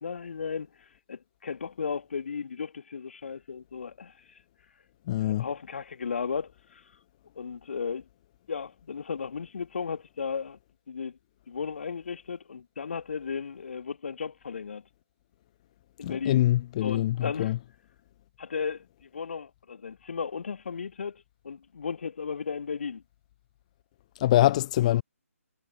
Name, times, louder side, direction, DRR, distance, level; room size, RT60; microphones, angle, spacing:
voice 1, 0.0-4.4 5.2-6.8 7.4-8.1 8.5-10.6 10.9-11.2 11.5-14.8 16.0-16.4 16.8-17.5 18.4-23.0 24.9-25.0, left 6 dB, 50° left, 1.5 m, -35 dB
voice 2, 5.1-5.4 16.0-17.6 24.2-25.0, left 14 dB, 25° left, 1.2 m, -24 dB
figure-of-eight pair, 145°, 8 cm